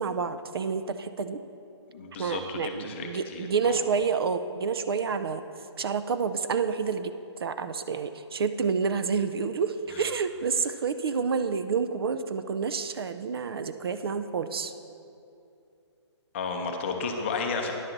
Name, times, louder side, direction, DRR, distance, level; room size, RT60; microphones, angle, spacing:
voice 1, 0.0-1.4 2.2-5.4 5.8-7.1 7.4-14.7, right 5 dB, 55° right, 10 dB, 0.4 m, -29 dB
voice 2, 1.9-3.8 9.9-10.0 16.3-17.7, left 4 dB, 25° left, 3 dB, 0.6 m, -33 dB
9.9 x 7.3 x 3.9 m, 2.6 s
hypercardioid pair, 165°, 15 cm